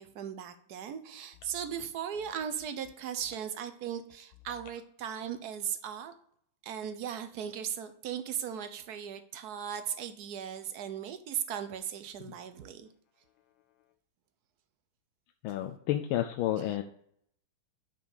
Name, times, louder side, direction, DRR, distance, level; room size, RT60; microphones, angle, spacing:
voice 1, 0.0-6.1 6.6-12.9, right 8 dB, 70° right, 10 dB, 0.9 m, -37 dB
voice 2, 15.4-16.8, left 13 dB, 80° left, 5 dB, 1.4 m, -30 dB
6.0 x 5.4 x 6.4 m, 0.66 s
omnidirectional pair, 2.3 m